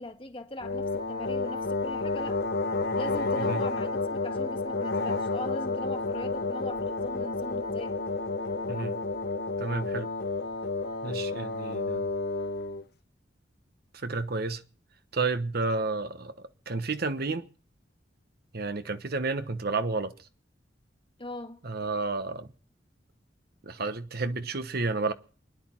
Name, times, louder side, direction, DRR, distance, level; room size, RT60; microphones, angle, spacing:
voice 1, 0.0-2.4 2.9-7.9 21.2-21.6, left 1 dB, 30° left, 1.6 m, -40 dB
sound 1, 0.6-12.8, left 3 dB, 60° left, 1.0 m, -31 dB
voice 2, 9.6-10.1 11.0-12.1 13.9-14.6 15.1-16.3 16.7-17.5 18.5-20.1 21.6-22.5 23.6-25.1, right 3 dB, 60° right, 1.1 m, -31 dB
28.5 x 11.0 x 4.5 m
head